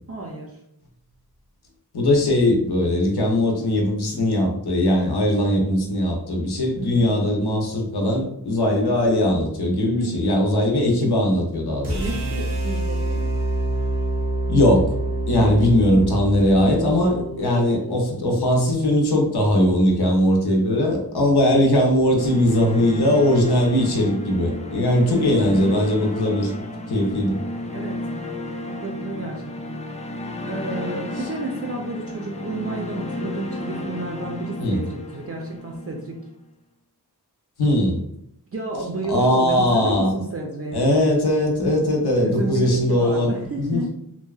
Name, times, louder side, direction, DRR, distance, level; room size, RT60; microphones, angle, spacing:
voice 1, 0.1-0.6 6.8-7.1 9.8-10.2 12.0-13.2 15.4-15.6 25.1-25.7 27.2-28.0 28.7-29.4 29.7-29.8 30.4-36.2 38.5-40.9 42.2-43.9, right 2 dB, 35° right, -1 dB, 0.5 m, -31 dB
voice 2, 1.9-12.0 14.5-14.9 15.3-26.5 26.9-27.4 34.6-34.8 37.6-37.9 39.1-40.1 40.7-43.3 43.7-43.8, left 1 dB, 75° left, 1 dB, 0.7 m, -20 dB
sound 1, 11.8-18.0, right 2 dB, 85° right, 0.7 m, -26 dB
sound 2, 22.2-36.3, left 1 dB, 20° left, 0.3 m, -32 dB
2.7 x 2.3 x 2.3 m, 0.76 s
cardioid pair, 40°, 39 cm